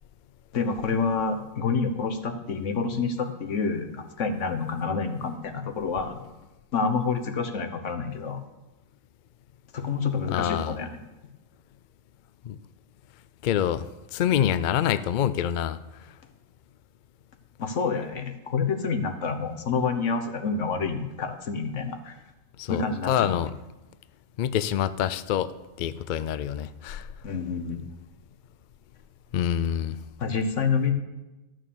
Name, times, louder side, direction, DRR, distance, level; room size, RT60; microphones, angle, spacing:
voice 1, 0.5-6.2 6.7-8.4 9.7-10.9 17.6-22.2 22.7-23.4 27.2-27.8 30.2-30.9, left 5 dB, 65° left, 7 dB, 1.4 m, -28 dB
voice 2, 10.3-10.7 12.5-12.6 13.4-13.8 14.1-15.8 22.6-23.5 24.4-25.5 25.8-27.0 29.3-30.0, left 10 dB, 80° left, 14 dB, 0.4 m, -26 dB
12.5 x 6.2 x 7.0 m, 1.1 s
omnidirectional pair, 1.4 m